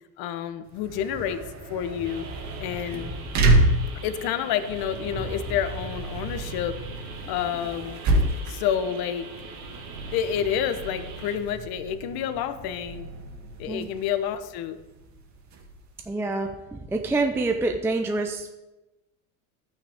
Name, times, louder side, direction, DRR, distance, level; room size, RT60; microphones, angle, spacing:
voice 1, 0.2-1.4 1.7-2.3 2.6-3.1 4.0-6.8 7.3-8.0 8.5-9.3 10.1-13.1 13.6-14.8, left 9 dB, 55° left, 11 dB, 1.1 m, -29 dB
sound 1, 0.7-16.0, right 1 dB, 40° right, 1.9 m, -29 dB
sound 2, 2.0-11.4, right 4 dB, 85° right, 2.9 m, -42 dB
voice 2, 16.1-18.6, right 3 dB, 5° right, 4 dB, 0.5 m, -27 dB
11.5 x 9.2 x 3.6 m, 1.0 s
supercardioid pair, 115°, 44 cm